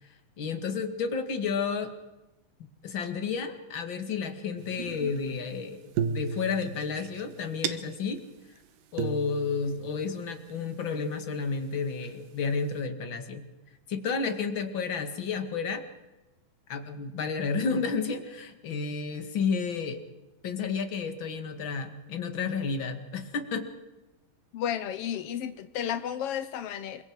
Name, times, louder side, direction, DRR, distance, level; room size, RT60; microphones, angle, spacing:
voice 1, 0.4-1.9 2.6-8.2 8.9-13.5 13.9-15.8 16.7-20.0 20.4-23.7, left 5 dB, 40° left, 2.2 m, -31 dB
sound 1, 4.6-5.5 5.9-8.2 8.6-8.7 9.0-10.5 11.2-11.3 12.0-12.5, right 6 dB, 75° right, 2.7 m, -35 dB
voice 2, 24.5-27.0, left 9 dB, 85° left, 1.3 m, -32 dB
28.0 x 24.5 x 4.8 m
omnidirectional pair, 4.1 m